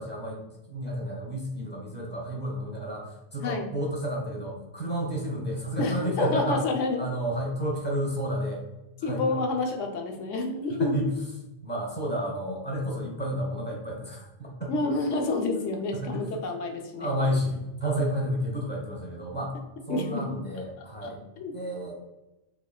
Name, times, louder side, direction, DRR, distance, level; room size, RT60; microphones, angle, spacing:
voice 1, 0.0-6.7 7.0-8.6 9.0-9.3 10.7-11.1 11.6-15.0 15.9-16.2 17.0-19.6 19.9-21.2 21.5-21.9, equal, 10° left, -3 dB, 0.8 m, -31 dB
voice 2, 5.8-7.0 9.0-11.0 14.7-17.1 19.9-20.3 20.8-21.5, left 3 dB, 80° left, 2 dB, 1.0 m, -29 dB
3.6 x 3.4 x 2.3 m, 1.0 s
omnidirectional pair, 1.3 m